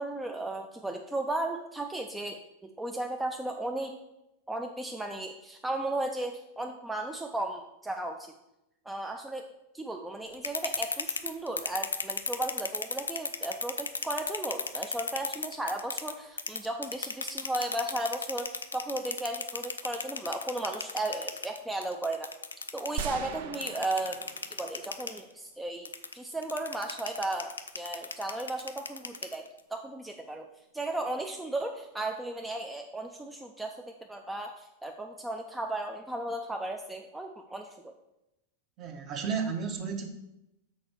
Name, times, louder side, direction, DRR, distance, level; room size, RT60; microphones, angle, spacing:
voice 1, 0.0-4.0 4.5-8.3 8.9-22.3 22.7-30.5 30.7-37.9, right 2 dB, 5° right, 3 dB, 0.5 m, -35 dB
sound 1, 10.3-16.1 16.4-23.0 23.5-25.2 25.8-29.6, left 4 dB, 75° left, 0.5 m, -34 dB
sound 2, 23.0-25.3, right 8 dB, 55° right, 0.5 m, -40 dB
voice 2, 38.8-40.1, right 6 dB, 35° right, 5 dB, 1.1 m, -33 dB
6.4 x 4.3 x 6.0 m, 0.89 s
figure-of-eight pair, 90°, 0 cm